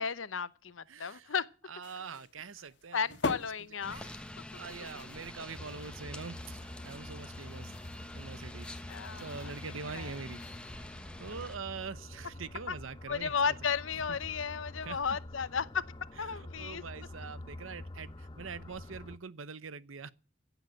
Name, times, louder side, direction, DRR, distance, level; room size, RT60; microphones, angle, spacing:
voice 1, 0.0-1.5 2.9-4.1 8.9-9.5 9.9-10.1 12.7-12.8 13.1-15.8 16.2-16.8, left 6 dB, 80° left, 0.8 m, -34 dB
voice 2, 0.9-1.3 1.7-3.2 3.9-4.2 4.5-7.7 8.1-10.4 10.7-10.9 11.2-13.6 14.1-14.4 14.8-15.0 16.2-20.1, right 5 dB, 90° right, 0.8 m, -44 dB
sound 1, 1.8-10.7, left 3 dB, 60° left, 1.4 m, -45 dB
sound 2, 3.8-11.6, left 1 dB, 5° left, 1.1 m, -47 dB
sound 3, 5.6-19.2, left 1 dB, 25° left, 0.7 m, -47 dB
16.0 x 8.2 x 7.7 m
head